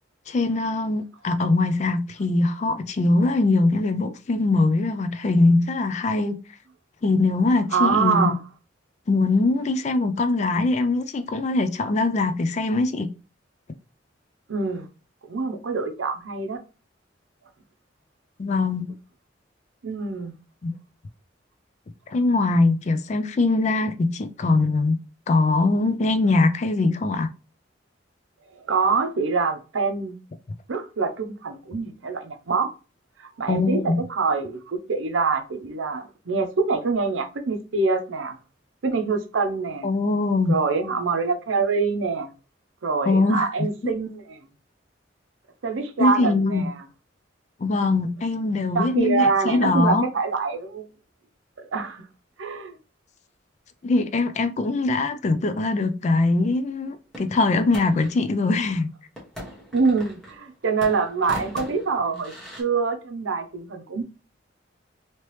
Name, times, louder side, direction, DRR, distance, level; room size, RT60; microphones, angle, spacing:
voice 1, 0.3-6.4 7.0-8.3 9.1-13.1 18.4-18.9 20.6-20.7 22.1-25.0 25.3-27.3 33.5-34.0 39.8-40.6 43.1-43.4 46.0-46.7 47.6-50.1 53.8-58.9, left 2 dB, 35° left, 0.3 m, -22 dB
voice 2, 7.7-8.4 14.5-14.9 15.3-16.6 19.8-20.3 28.6-30.2 30.7-32.7 33.4-38.4 38.8-39.9 40.5-42.3 42.8-44.4 45.6-46.9 48.7-50.9 51.6-52.0 52.4-52.8 59.7-62.3 62.6-64.0, right 4 dB, 85° right, 0.6 m, -25 dB
sound 1, 57.1-58.2 59.2-60.5 60.8-62.6, left 1 dB, 5° left, 1.0 m, -39 dB
3.1 x 2.9 x 3.0 m
head